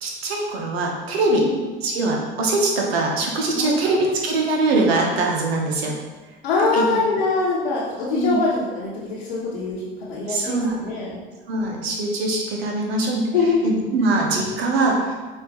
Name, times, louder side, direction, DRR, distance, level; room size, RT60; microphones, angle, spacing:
voice 1, 0.0-1.4 1.8-5.9 6.7-7.0 8.1-8.4 10.3-10.9 11.5-13.2 13.6-15.1, right 2 dB, 90° right, -1 dB, 0.9 m, -22 dB
voice 2, 3.5-4.1 6.4-11.2 13.3-13.7, left 4 dB, 85° left, -8 dB, 1.0 m, -24 dB
5.2 x 2.8 x 2.9 m, 1.3 s
hypercardioid pair, 90°, 30 cm